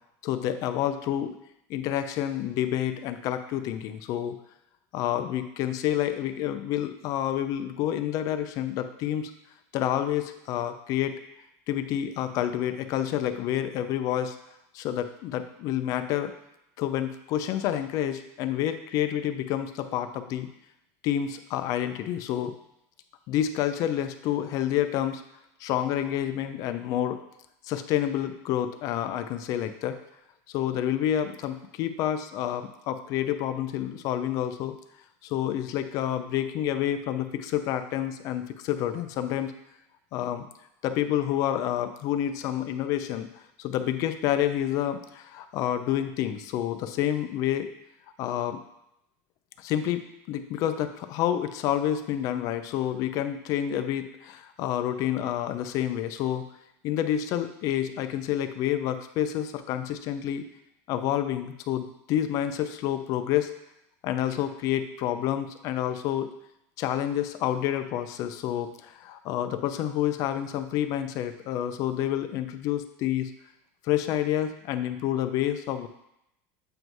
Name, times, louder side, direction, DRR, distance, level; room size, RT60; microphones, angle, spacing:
voice 1, 0.2-1.3 1.7-4.4 4.9-9.3 9.7-11.1 11.7-14.4 14.7-16.3 16.8-20.5 21.0-22.5 23.3-25.2 25.6-27.2 27.6-30.0 30.5-34.7 35.2-39.5 40.1-40.5 40.8-43.3 43.6-47.7 48.2-48.6 49.6-56.4 56.8-60.5 60.9-63.5 64.0-66.3 66.8-73.3 73.8-75.9, left 11 dB, 45° left, 9 dB, 0.5 m, -28 dB
7.8 x 2.6 x 4.6 m, 0.82 s
cardioid pair, 155°, 8 cm